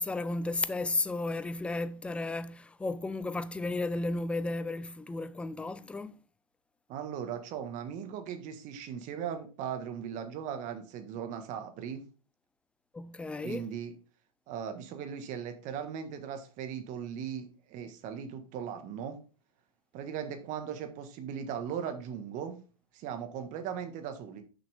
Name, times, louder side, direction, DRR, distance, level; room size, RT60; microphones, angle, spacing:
voice 1, 0.0-6.2 12.9-13.7, left 2 dB, 5° left, 0.3 m, -33 dB
voice 2, 6.9-12.0 13.4-13.9 14.5-19.2 19.9-22.6 22.9-24.4, right 8 dB, 40° right, 1.5 m, -38 dB
6.4 x 5.8 x 3.5 m
hypercardioid pair, 115°, 19 cm